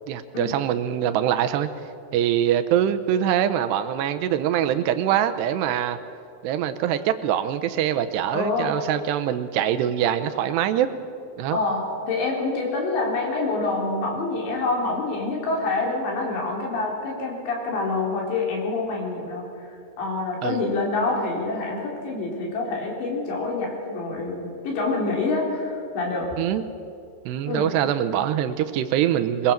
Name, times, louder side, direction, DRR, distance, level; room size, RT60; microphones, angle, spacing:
voice 1, 0.1-1.7 2.1-6.0 6.4-10.9 11.4-11.6 20.4-20.6 26.4-26.6 27.3-29.5, right 10 dB, 85° right, 10 dB, 3.0 m, -23 dB
voice 2, 8.3-8.7 11.5-26.4 27.5-27.7, left 3 dB, 90° left, -1 dB, 6.1 m, -26 dB
22.5 x 21.5 x 7.5 m, 2.4 s
omnidirectional pair, 4.9 m